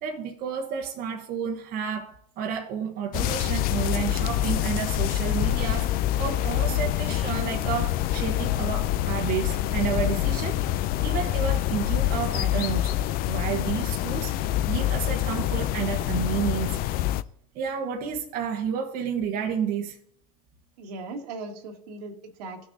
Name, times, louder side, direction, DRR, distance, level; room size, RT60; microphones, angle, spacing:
voice 1, 0.0-13.0 13.3-16.8 17.5-20.0, right 7 dB, 50° right, 1.1 m, -31 dB
sound 1, 3.1-17.2, left 13 dB, 45° left, 0.5 m, -26 dB
voice 2, 20.8-22.7, right 3 dB, 80° right, 1.7 m, -38 dB
17.5 x 6.3 x 2.7 m
supercardioid pair, 105°, 20 cm